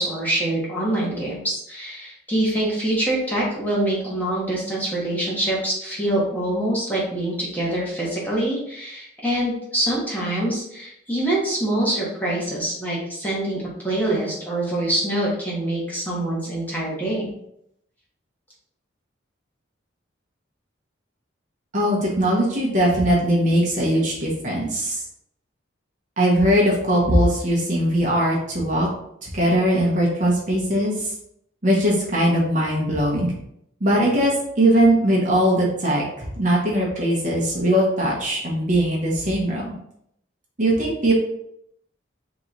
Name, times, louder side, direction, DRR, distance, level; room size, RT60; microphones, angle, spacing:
voice 1, 0.0-17.3, right 1 dB, 10° left, -6 dB, 1.2 m, -25 dB
voice 2, 21.7-25.0 26.2-28.9 29.2-31.1 31.6-33.3 33.8-39.7 40.6-41.1, right 1 dB, 40° right, -3 dB, 1.0 m, -20 dB
3.8 x 3.0 x 3.9 m, 0.74 s
head